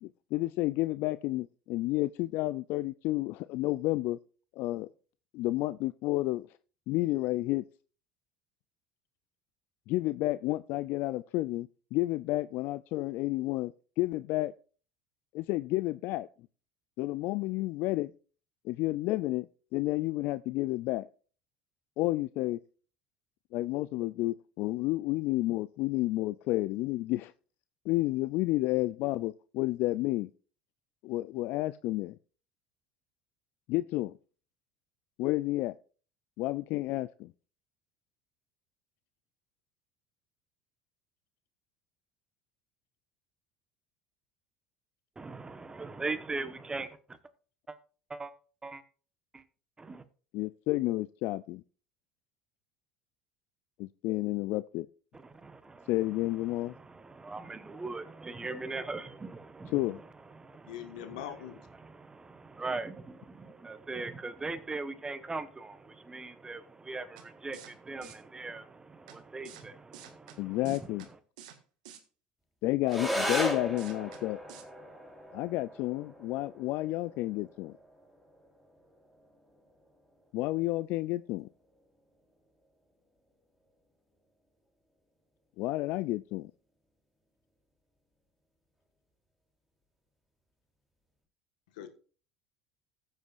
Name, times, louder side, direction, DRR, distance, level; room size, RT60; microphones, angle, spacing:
voice 1, 0.0-4.2 4.6-4.9 5.3-6.5 6.9-7.6 9.9-14.5 15.3-16.3 17.0-18.1 18.6-19.5 19.7-21.1 22.0-22.6 23.5-27.3 27.9-30.3 31.0-32.1 33.7-34.1 35.2-35.7 36.4-37.3 50.3-51.6 53.8-54.9 55.9-56.7 59.7-60.0 70.4-71.1 72.6-74.4 75.3-77.8 80.3-81.5 85.6-86.5, left 18 dB, 60° left, 0.3 m, -31 dB
voice 2, 45.2-47.2 47.7-47.8 48.1-48.3 48.6-48.8 49.3-49.4 49.8-50.0 55.1-55.9 56.5-60.0 60.3-70.9, right 3 dB, 20° right, 1.2 m, -40 dB
voice 3, 60.7-61.6 91.8-91.9, left 11 dB, 80° left, 1.5 m, -41 dB
sound 1, 67.2-67.3 67.5-67.7 68.0-68.1 69.1-69.2 69.4-69.6 69.9-70.4 70.6-71.1 71.4-71.6 71.8-72.0 72.9-73.0 73.3-73.5 73.8-74.2 74.5-74.6, right 10 dB, 75° right, 1.7 m, -49 dB
sound 2, 72.9-81.9, equal, ahead, 3.0 m, -38 dB
15.5 x 8.1 x 2.5 m
hypercardioid pair, 75°, 4 cm